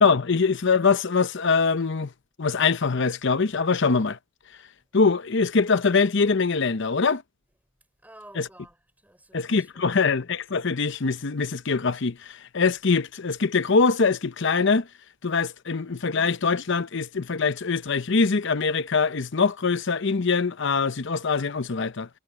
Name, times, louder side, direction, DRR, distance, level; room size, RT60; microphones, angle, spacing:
voice 1, 0.0-2.1 2.4-4.2 4.9-7.2 8.4-8.5 9.3-14.9 15.2-22.1, left 4 dB, 60° left, 0.8 m, -23 dB
voice 2, 8.0-10.1, right 1 dB, 10° right, 4.4 m, -52 dB
head